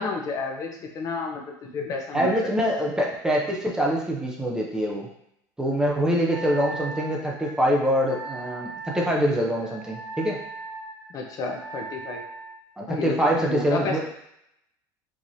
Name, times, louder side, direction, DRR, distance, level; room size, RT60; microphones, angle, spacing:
voice 1, 0.0-2.3 11.1-12.2 12.9-14.0, left 4 dB, 40° left, 2 dB, 0.6 m, -31 dB
voice 2, 2.1-5.1 5.6-10.4 12.8-14.0, equal, 5° right, -2 dB, 0.6 m, -24 dB
Wind instrument woodwind instrument, 6.3-12.6, right 4 dB, 55° right, 1.3 m, -39 dB
4.7 x 2.9 x 2.7 m, 0.77 s
cardioid pair, 135°, 9 cm